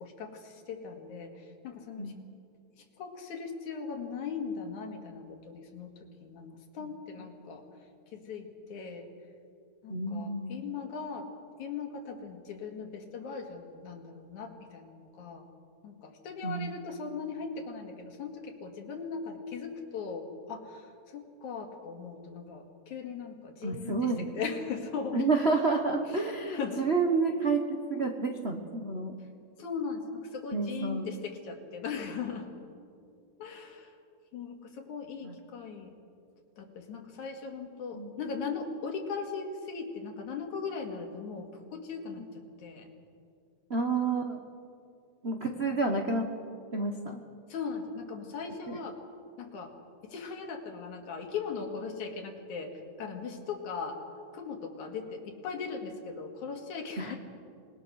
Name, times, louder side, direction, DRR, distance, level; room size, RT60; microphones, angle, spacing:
voice 1, 0.0-2.1 2.8-6.0 6.2-6.5 6.7-7.6 8.1-9.1 9.8-11.3 11.6-15.5 15.8-25.3 26.1-26.8 29.6-32.5 33.4-33.9 34.3-35.9 36.6-42.3 42.6-42.9 45.5-45.8 47.5-49.0 49.4-49.7 50.0-54.0 54.3-57.2, left 5 dB, 80° left, 3 dB, 3.4 m, -39 dB
voice 2, 9.9-10.6 16.4-16.7 23.6-24.2 25.1-29.1 30.5-31.1 35.2-35.3 37.9-38.1 43.7-44.4 45.2-46.2 46.7-47.2 48.7-48.8 57.0-57.1, right 3 dB, 70° right, 3 dB, 0.6 m, -29 dB
27.0 x 20.0 x 6.4 m, 2.4 s
omnidirectional pair, 3.4 m